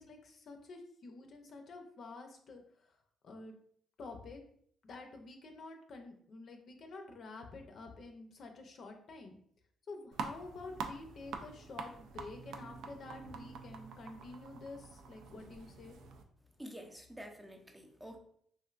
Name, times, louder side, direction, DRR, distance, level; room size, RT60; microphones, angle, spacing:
voice 1, 0.0-2.6 3.2-3.6 4.0-4.4 4.8-9.4 9.9-16.0, left 3 dB, 60° left, 4 dB, 0.5 m, -49 dB
sound 1, 10.1-16.2, right 5 dB, 75° right, 0.3 m, -46 dB
voice 2, 16.6-18.2, equal, 10° right, 3 dB, 0.5 m, -49 dB
3.1 x 2.6 x 2.4 m, 0.64 s
cardioid pair, 90°, 0 cm